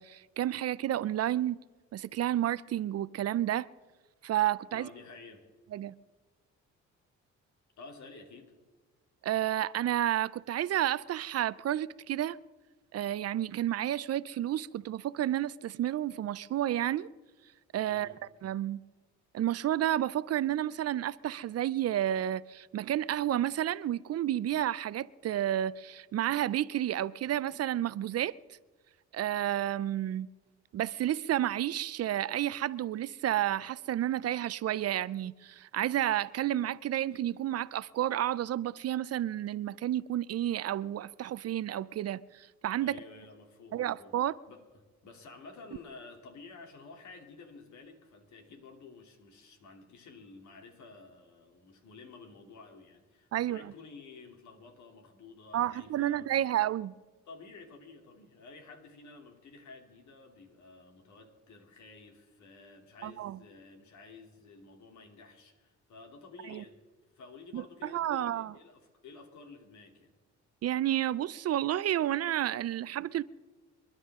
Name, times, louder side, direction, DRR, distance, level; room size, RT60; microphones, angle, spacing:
voice 1, 0.0-1.6 1.9-3.7 4.2-4.9 5.7-5.9 9.2-12.4 12.9-17.1 17.7-18.1 18.4-18.8 19.3-28.3 29.1-30.3 30.7-43.0 43.7-44.3 53.3-53.6 55.5-56.9 63.0-63.4 66.5-66.6 67.5-68.5 70.6-73.2, right 12 dB, 55° right, 0.5 m, -31 dB
voice 2, 4.7-5.5 7.8-8.5 17.9-18.2 42.8-44.2 44.5-56.5 57.3-66.8 67.1-70.1, left 4 dB, 70° left, 3.0 m, -52 dB
27.5 x 11.5 x 3.7 m
cardioid pair, 90°, 30 cm